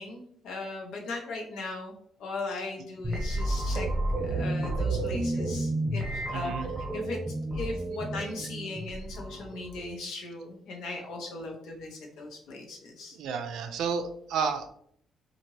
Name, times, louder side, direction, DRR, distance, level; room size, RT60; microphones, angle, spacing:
voice 1, 0.0-3.9 4.2-6.5 6.9-7.2 7.5-13.2, left 3 dB, 80° left, 0 dB, 0.8 m, -38 dB
sound 1, 3.0-9.9, right 1 dB, 15° right, 1.0 m, -31 dB
voice 2, 6.3-6.7 13.1-14.7, right 6 dB, 75° right, 6 dB, 0.4 m, -31 dB
2.8 x 2.5 x 3.0 m, 0.64 s
cardioid pair, 140°, 0 cm